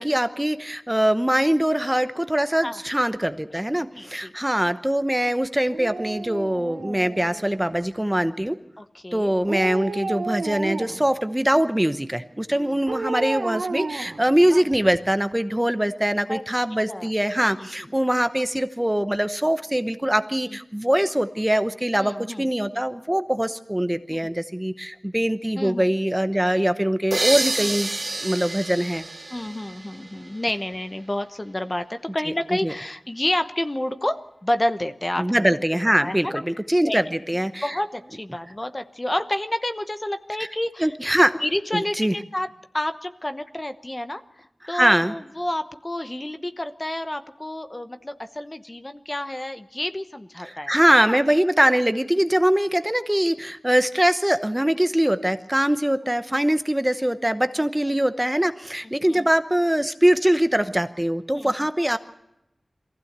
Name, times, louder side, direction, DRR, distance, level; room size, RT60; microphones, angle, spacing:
voice 1, 0.0-8.6 9.1-27.9 28.2-29.1 32.6-32.7 35.2-37.8 40.8-41.4 41.7-42.2 44.6-45.1 50.4-62.0, right 1 dB, 10° right, 11 dB, 0.9 m, -22 dB
voice 2, 3.9-4.3 8.8-9.3 12.5-12.9 16.3-16.4 16.9-17.1 17.5-17.7 20.4-20.6 21.9-22.5 24.1-24.3 25.6-25.9 29.3-35.4 36.0-36.4 36.8-37.0 37.6-40.9 41.4-42.5 42.7-51.2 57.8-58.0 58.8-59.3 61.3-61.5, left 1 dB, 25° left, 9 dB, 1.0 m, -30 dB
Dog, 5.7-7.7 9.4-11.1 12.9-15.0 15.3-15.4, right 3 dB, 80° right, 1.3 m, -32 dB
sound 1, 27.1-30.7, right 2 dB, 40° right, 0.9 m, -29 dB
23.0 x 15.5 x 8.1 m, 0.87 s
wide cardioid pair, 80°, 0 cm